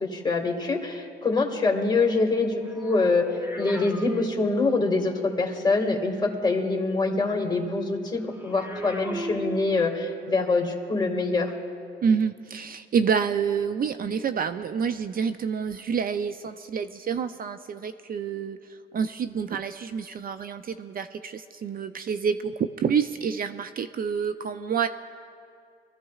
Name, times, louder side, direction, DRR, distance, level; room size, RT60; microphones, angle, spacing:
voice 1, 0.0-3.3 3.6-11.5, left 3 dB, 20° left, 2 dB, 1.9 m, -25 dB
sound 1, 2.3-5.1 8.2-10.2 11.0-11.2, equal, 10° right, 1.1 m, -36 dB
voice 2, 12.0-24.9, right 6 dB, 45° right, 10 dB, 0.4 m, -28 dB
22.5 x 14.5 x 2.4 m, 2.4 s
cardioid pair, 90°, 20 cm